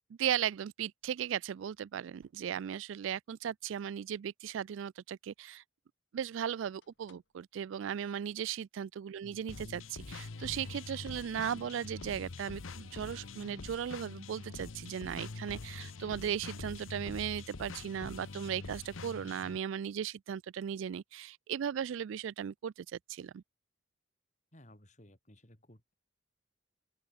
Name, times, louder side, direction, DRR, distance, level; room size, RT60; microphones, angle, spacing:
voice 1, 0.2-5.6 6.1-23.4, right 9 dB, 75° right, 0.3 m, -37 dB
sound 1, 6.7-7.6 8.0-8.1 8.3-8.4 9.2-9.4 10.8-11.8 13.0-14.4 14.7-15.9, left 5 dB, 70° left, 5.2 m, -74 dB
sound 2, 9.5-19.6, left 3 dB, 90° left, 0.9 m, -45 dB
voice 2, 24.5-25.9, left 1 dB, 35° left, 4.4 m, -58 dB
open air
head